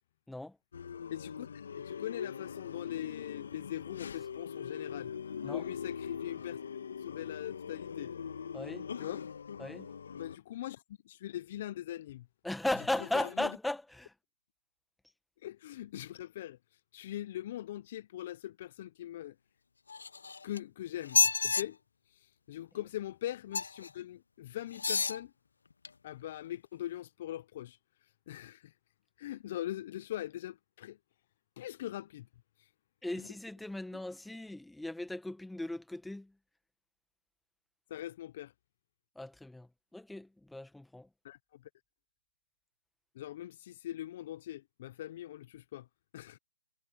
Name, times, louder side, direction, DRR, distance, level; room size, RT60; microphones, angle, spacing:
sound 1, 0.7-10.4, left 7 dB, 55° left, 2.0 m, -42 dB
voice 1, 1.1-5.1 5.4-6.6 7.0-8.1 9.0-9.3 10.1-12.3 13.0-13.5 15.4-19.4 20.4-21.8 22.1-25.3 26.0-28.7 29.2-31.0 31.6-32.3 32.6-32.7 33.1-33.3 33.9-34.0 37.9-38.5 41.2-41.6 43.1-45.9 46.1-46.4, left 13 dB, 35° left, 0.8 m, -42 dB
voice 2, 8.5-8.9 9.6-9.9 12.4-14.1 33.0-36.3 39.2-41.1, left 1 dB, ahead, 1.8 m, -37 dB
sound 2, 19.9-20.6 21.0-21.6 23.5-23.9 24.7-25.2 25.8-25.9, left 4 dB, 70° left, 0.9 m, -29 dB
hypercardioid pair, 150°, 0 cm